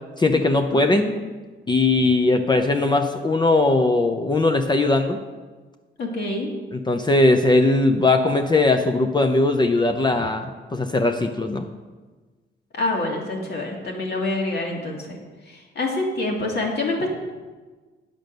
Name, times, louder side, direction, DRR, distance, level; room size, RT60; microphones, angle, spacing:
voice 1, 0.2-1.1 1.7-5.2 6.7-11.7, left 2 dB, 20° left, 5 dB, 0.6 m, -19 dB
voice 2, 0.7-1.2 6.0-6.5 12.7-15.2 15.5-17.1, left 2 dB, 55° left, 0 dB, 2.2 m, -26 dB
8.8 x 5.2 x 6.6 m, 1.3 s
cardioid pair, 90°, 20 cm